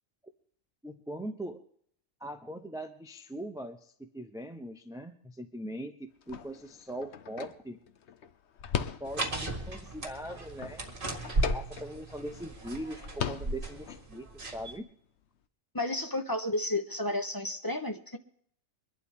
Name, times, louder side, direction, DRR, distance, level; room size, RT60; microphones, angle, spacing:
voice 1, 0.8-1.6 2.2-7.8 9.0-10.9 11.5-14.9, right 1 dB, 5° right, 7 dB, 0.5 m, -41 dB
sound 1, 6.2-9.5 9.9-12.2 12.5-12.6 12.9-14.1, left 8 dB, 60° left, 1.0 m, -38 dB
sound 2, 9.0-14.8, right 2 dB, 40° right, 2.1 m, -36 dB
voice 2, 15.7-18.2, left 1 dB, 20° left, 6 dB, 0.9 m, -32 dB
23.5 x 11.5 x 3.7 m, 0.66 s
omnidirectional pair, 1.4 m